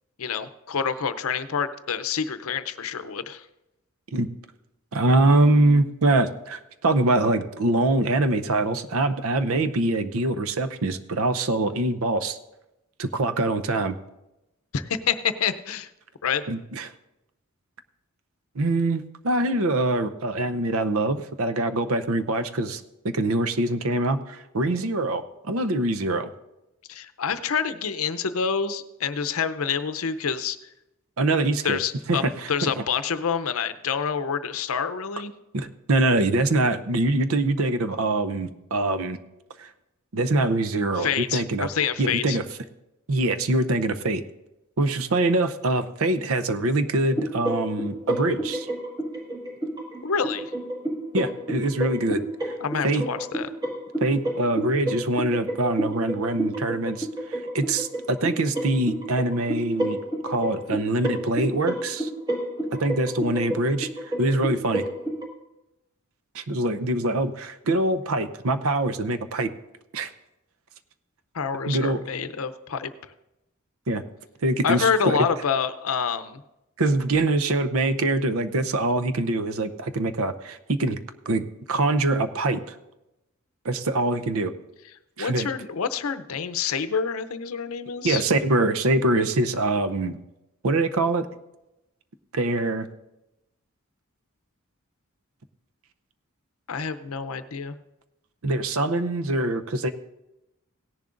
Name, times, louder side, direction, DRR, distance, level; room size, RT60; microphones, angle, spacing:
voice 1, 0.2-3.4 14.7-15.9 16.2-16.4 26.9-30.6 31.6-32.2 32.5-35.3 41.0-42.4 50.0-50.5 52.6-53.5 71.3-72.9 74.6-76.4 85.2-88.2 96.7-97.8, left 6 dB, 75° left, 12 dB, 0.6 m, -27 dB
voice 2, 4.9-12.4 13.0-14.0 16.5-16.9 18.6-26.3 31.2-31.8 32.1-32.8 35.5-39.2 39.6-39.7 40.1-41.7 42.0-42.4 43.1-44.2 44.8-48.7 51.1-52.5 52.8-53.1 54.0-60.0 60.2-62.1 62.8-64.8 66.3-69.5 69.9-70.1 71.7-72.0 73.9-74.0 74.4-75.2 76.8-81.0 81.3-82.8 83.6-84.5 85.2-85.5 88.0-90.2 90.6-91.3 92.3-92.9 98.4-99.9, right 2 dB, 75° right, 10 dB, 0.7 m, -24 dB
sound 1, 47.1-65.3, right 1 dB, 20° right, 1.8 m, -31 dB
17.5 x 10.5 x 2.5 m, 0.93 s
head